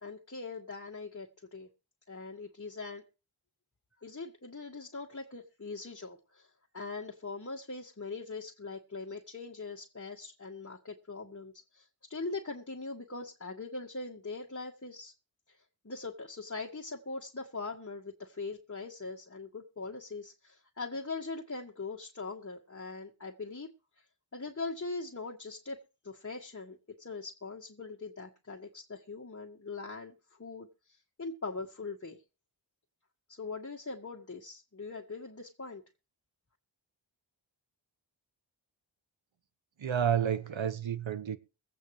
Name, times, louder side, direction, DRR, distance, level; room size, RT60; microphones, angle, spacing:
voice 1, 0.0-1.7 2.1-3.0 4.0-15.1 15.5-15.6 15.8-23.7 24.3-32.2 33.3-35.8, left 3 dB, 30° left, 1.8 m, -41 dB
voice 2, 39.8-41.4, right 8 dB, 75° right, 1.2 m, -30 dB
23.5 x 8.4 x 3.3 m
cardioid pair, 55°, 47 cm